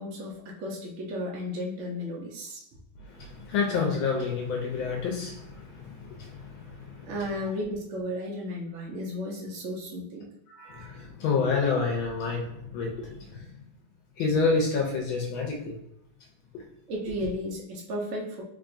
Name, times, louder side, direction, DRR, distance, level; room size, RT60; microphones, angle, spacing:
voice 1, 0.0-2.6 7.1-10.2 16.9-18.4, left 1 dB, 70° right, -2 dB, 0.7 m, -34 dB
voice 2, 3.1-7.1 10.5-13.5 14.2-15.8, left 4 dB, 75° left, 0 dB, 1.4 m, -29 dB
3.5 x 3.4 x 2.5 m, 0.79 s
omnidirectional pair, 2.4 m